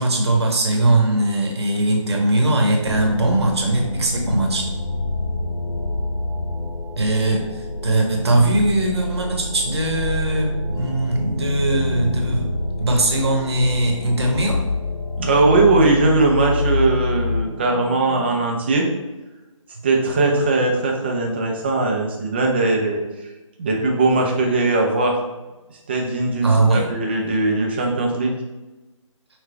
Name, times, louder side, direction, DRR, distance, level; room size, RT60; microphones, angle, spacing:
voice 1, 0.0-4.7 7.0-14.7 26.4-26.9, right 2 dB, 50° right, 2 dB, 1.1 m, -20 dB
sound 1, 2.8-18.4, left 2 dB, 60° left, 1.3 m, -27 dB
voice 2, 15.2-18.9 19.8-23.0 23.6-25.2 25.9-28.3, right 2 dB, 20° right, 1 dB, 0.5 m, -19 dB
6.0 x 2.3 x 3.4 m, 1.1 s
figure-of-eight pair, 155°, 17 cm